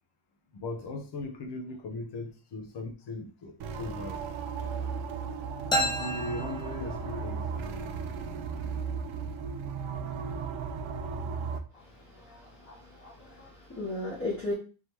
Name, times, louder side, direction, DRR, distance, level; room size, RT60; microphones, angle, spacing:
voice 1, 0.5-4.2 5.7-7.5, left 2 dB, 55° left, 0.9 m, -38 dB
sound 1, 3.6-11.6, right 5 dB, 65° right, 0.6 m, -35 dB
sound 2, 5.7-7.4, equal, 10° left, 0.7 m, -31 dB
voice 2, 11.7-14.5, left 2 dB, 25° left, 1.1 m, -37 dB
3.7 x 3.3 x 3.0 m
wide cardioid pair, 170°, 49 cm